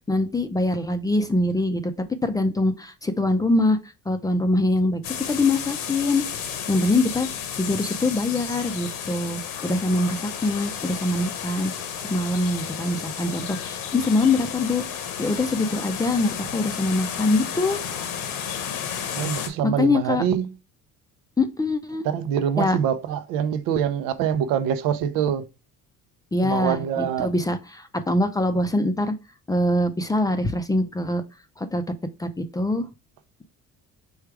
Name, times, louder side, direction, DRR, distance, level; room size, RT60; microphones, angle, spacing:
voice 1, 0.1-1.9 2.2-3.8 4.1-5.0 5.3-6.2 6.7-7.3 7.6-11.7 12.1-17.8 19.8-20.2 21.4-22.1 22.6-22.8 26.3-29.1 29.5-31.2 31.6-31.8 32.2-32.9, left 2 dB, 10° left, 0.4 m, -23 dB
sound 1, 5.0-19.5, left 8 dB, 80° left, 1.0 m, -32 dB
voice 2, 19.1-20.5 22.0-25.4 26.4-27.3, right 8 dB, 85° right, 0.6 m, -24 dB
4.7 x 2.3 x 4.6 m
cardioid pair, 120°, 33 cm